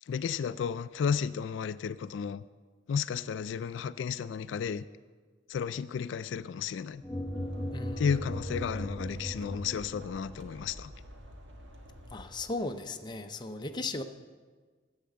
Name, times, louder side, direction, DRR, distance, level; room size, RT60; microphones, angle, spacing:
voice 1, 0.1-2.4 2.9-4.9 5.5-7.0 8.0-10.9, left 7 dB, 70° left, 0.3 m, -33 dB
sound 1, 6.9-12.9, equal, 75° right, 1.6 m, -48 dB
sound 2, 7.0-10.3, equal, 5° right, 1.0 m, -37 dB
voice 2, 7.7-8.0 12.1-14.0, left 2 dB, 25° left, 0.6 m, -36 dB
10.0 x 8.1 x 7.5 m
head